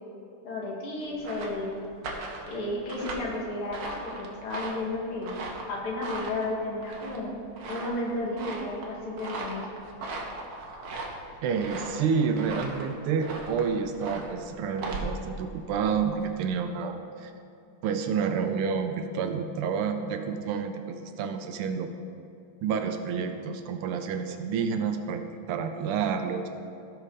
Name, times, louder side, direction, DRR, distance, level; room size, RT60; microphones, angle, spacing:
voice 1, 0.4-1.8 2.5-5.3 5.7-7.3 7.7-9.7, left 2 dB, 80° left, -2 dB, 2.5 m, -33 dB
sound 1, 1.0-16.3, right 2 dB, 75° right, 2.0 m, -39 dB
voice 2, 11.4-17.3 17.8-21.9 22.6-26.5, right 6 dB, 90° right, 6 dB, 1.6 m, -29 dB
15.5 x 5.9 x 3.8 m, 2.7 s
omnidirectional pair, 2.4 m